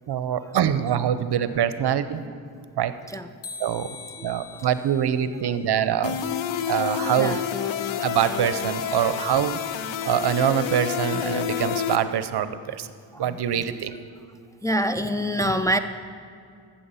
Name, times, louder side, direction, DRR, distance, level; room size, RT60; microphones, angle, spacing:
voice 1, 0.1-2.3 2.8-2.9 3.6-3.9 4.2-6.2 6.7-7.4 8.0-9.6 10.0-12.9 13.2-13.9, right 9 dB, 60° right, 13 dB, 0.7 m, -24 dB
sound 1, 3.4-6.5, left 4 dB, 60° left, 1.4 m, -44 dB
voice 2, 4.2-4.7 7.2-7.4 9.1-9.2 13.1-13.4 14.6-15.8, equal, 10° left, 6 dB, 0.5 m, -26 dB
sound 2, 6.0-12.0, left 9 dB, 85° left, 0.7 m, -29 dB
13.5 x 7.3 x 5.6 m, 2.4 s
cardioid pair, 60°, 45 cm